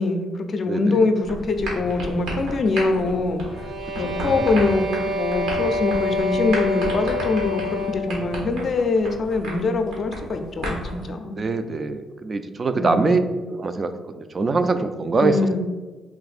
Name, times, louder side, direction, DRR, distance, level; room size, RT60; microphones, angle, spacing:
voice 1, 0.0-3.7 4.0-11.4 12.8-13.3 15.2-15.6, left 3 dB, 50° left, 6 dB, 0.4 m, -23 dB
voice 2, 0.7-1.0 4.0-4.2 11.4-13.2 13.5-15.4, right 3 dB, 35° right, 9 dB, 0.3 m, -23 dB
sound 1, 1.2-11.1, right 1 dB, 90° right, 1.1 m, -33 dB
sound 2, 3.4-8.2, left 2 dB, 55° right, 0.7 m, -27 dB
3.5 x 2.4 x 4.1 m, 1.3 s
cardioid pair, 90°, 0 cm